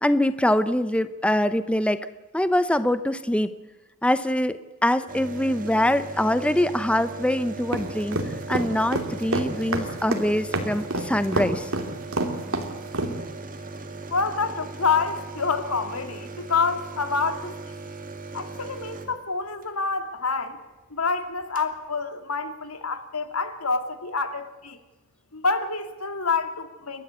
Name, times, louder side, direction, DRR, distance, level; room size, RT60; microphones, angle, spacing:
voice 1, 0.0-2.1 2.3-3.5 4.0-8.2 8.5-11.7, left 1 dB, 5° left, 0.7 m, -24 dB
sound 1, 5.1-19.7 21.0-21.1 21.3-21.7, right 3 dB, 40° right, 2.4 m, -38 dB
sound 2, 7.7-13.1, right 2 dB, 65° right, 3.0 m, -26 dB
voice 2, 14.1-17.5 18.3-20.6 20.9-24.8 25.3-27.0, left 4 dB, 80° left, 2.3 m, -27 dB
30.0 x 12.5 x 8.3 m
head